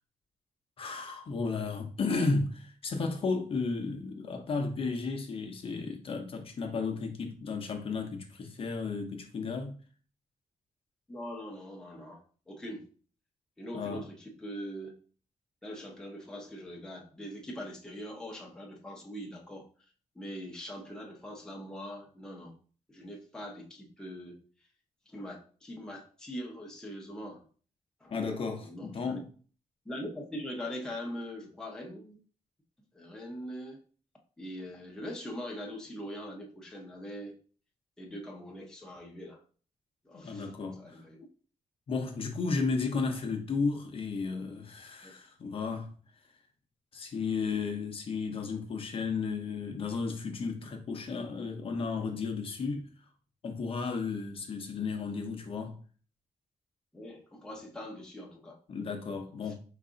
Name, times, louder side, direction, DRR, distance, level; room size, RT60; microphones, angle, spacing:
voice 1, 0.8-9.8 13.7-14.1 28.1-29.3 40.1-41.0 41.9-45.9 46.9-52.9 53.4-55.8 58.7-59.5, left 4 dB, 45° left, 0.6 m, -33 dB
voice 2, 11.1-12.9 13.6-14.9 15.6-19.7 20.2-22.6 22.9-24.4 25.1-27.4 28.0-28.1 28.6-29.2 29.9-32.2 32.9-33.8 34.4-37.3 38.0-39.4 40.0-40.5 40.8-41.3 45.0-45.1 56.9-58.6 59.4-59.5, equal, 5° left, 0.6 m, -42 dB
4.6 x 2.4 x 3.8 m
wide cardioid pair, 180°, 13 cm